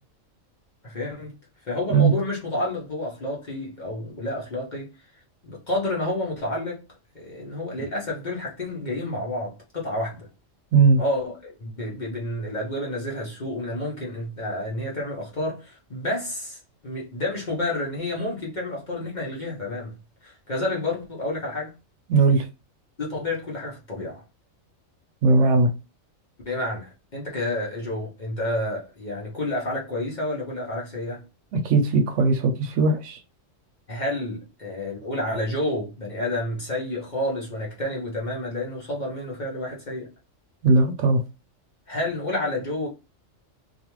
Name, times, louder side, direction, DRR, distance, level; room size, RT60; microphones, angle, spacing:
voice 1, 0.8-1.4 1.7-4.9 5.4-6.8 7.1-10.3 11.0-21.7 23.0-24.2 26.4-31.2 33.9-40.1 41.9-42.9, left 1 dB, 40° left, 0.7 m, -30 dB
voice 2, 10.7-11.0 22.1-22.5 25.2-25.7 31.5-33.2 40.6-41.2, right 3 dB, 70° right, 0.9 m, -19 dB
2.5 x 2.3 x 2.9 m
omnidirectional pair, 1.4 m